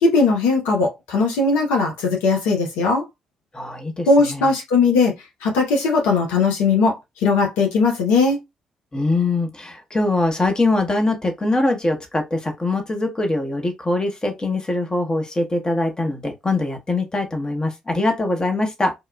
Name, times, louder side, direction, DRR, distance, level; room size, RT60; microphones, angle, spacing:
voice 1, 0.0-3.0 4.1-5.1 5.4-8.4, left 4 dB, 75° left, 0.7 m, -18 dB
voice 2, 3.5-4.5 8.9-18.9, left 2 dB, 25° left, 0.9 m, -22 dB
3.0 x 2.3 x 2.2 m
hypercardioid pair, 40°, 3 cm